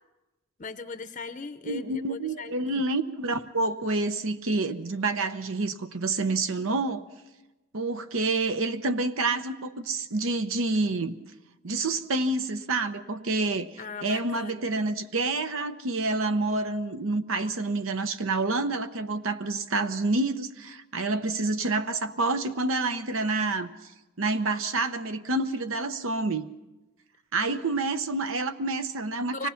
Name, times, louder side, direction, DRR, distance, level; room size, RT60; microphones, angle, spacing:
voice 1, 0.6-2.8 13.8-14.6 29.3-29.5, left 4 dB, 35° left, 9 dB, 0.7 m, -39 dB
voice 2, 1.7-7.0 7.7-11.1 11.6-13.7 14.0-23.7 24.2-26.5 27.3-29.5, right 3 dB, 75° right, 10 dB, 0.9 m, -28 dB
25.0 x 18.0 x 5.8 m, 1.1 s
head